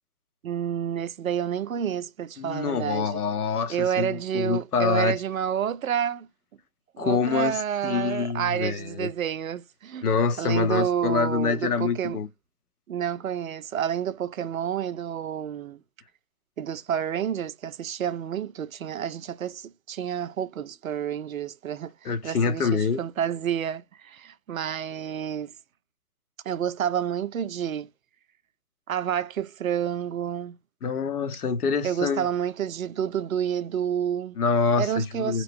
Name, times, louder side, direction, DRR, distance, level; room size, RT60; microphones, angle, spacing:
voice 1, 0.4-3.2 3.7-6.3 6.9-12.2 12.9-15.8 16.6-25.5 26.5-27.9 28.9-30.6 31.8-34.4 34.8-35.4, right 9 dB, 65° right, 0.5 m, -29 dB
voice 2, 2.4-5.1 7.0-9.1 10.0-12.3 22.0-23.0 30.8-32.3 34.4-35.4, left 5 dB, 90° left, 0.9 m, -26 dB
3.1 x 3.0 x 2.5 m
hypercardioid pair, 180°, 44 cm